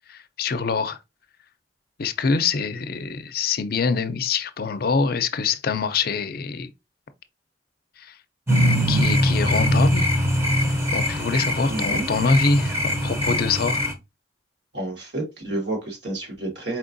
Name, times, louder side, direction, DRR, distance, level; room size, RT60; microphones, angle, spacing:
voice 1, 0.1-1.0 2.0-6.7 8.0-8.1 8.9-10.2 10.9-13.8, left 4 dB, 55° left, 0.5 m, -24 dB
sound 1, 8.5-13.9, equal, 15° right, 0.7 m, -22 dB
voice 2, 11.7-12.0 14.7-16.8, right 2 dB, 75° right, 1.7 m, -30 dB
4.5 x 3.6 x 2.5 m
head